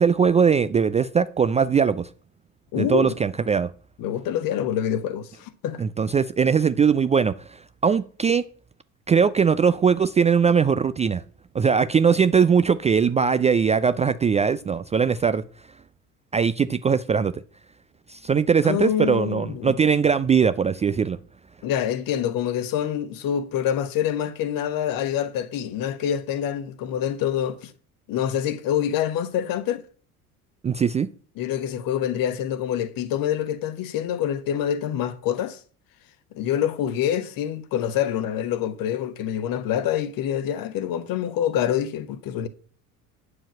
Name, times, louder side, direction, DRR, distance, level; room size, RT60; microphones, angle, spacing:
voice 1, 0.0-2.1 2.7-3.7 5.8-8.4 9.1-11.2 11.5-15.4 16.3-17.3 18.1-21.2 30.6-31.1, right 6 dB, 15° right, 0.4 m, -20 dB
voice 2, 2.7-3.1 4.0-5.8 18.6-19.7 21.6-27.7 28.1-29.8 31.4-35.6 36.3-42.5, left 10 dB, 50° left, 1.3 m, -26 dB
8.8 x 4.8 x 7.4 m
figure-of-eight pair, 60°, 43 cm